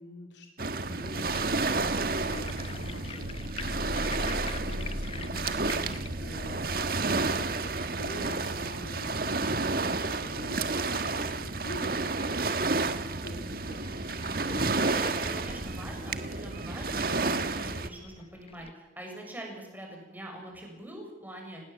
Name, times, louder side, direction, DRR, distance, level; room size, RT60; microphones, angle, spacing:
voice 1, 0.0-12.6 13.1-13.9, left 1 dB, 80° left, 2 dB, 3.3 m, -46 dB
Waves surf, 0.6-17.9, right 3 dB, 55° right, 1.5 m, -31 dB
sound 1, 1.2-12.2 12.7-12.8 13.0-13.1 13.7-18.7, left 2 dB, 30° left, 1.0 m, -42 dB
voice 2, 14.9-21.6, right 1 dB, 10° right, 0 dB, 7.3 m, -44 dB
27.0 x 20.5 x 7.8 m, 1.1 s
head